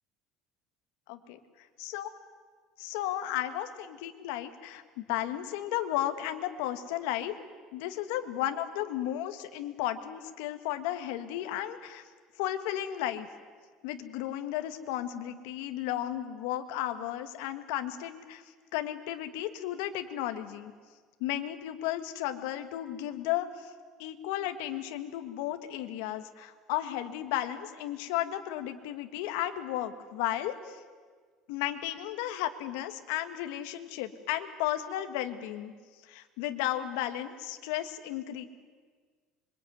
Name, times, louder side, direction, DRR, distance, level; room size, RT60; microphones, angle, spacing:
voice 1, 1.8-2.1 2.8-7.3 7.7-12.0 12.4-13.3 13.8-18.4 18.7-20.7 21.2-23.7 24.0-30.8 31.5-35.7 36.0-38.4, left 12 dB, 80° left, 8 dB, 1.8 m, -34 dB
25.5 x 22.5 x 9.4 m, 1.5 s
cardioid pair, 145°, 0 cm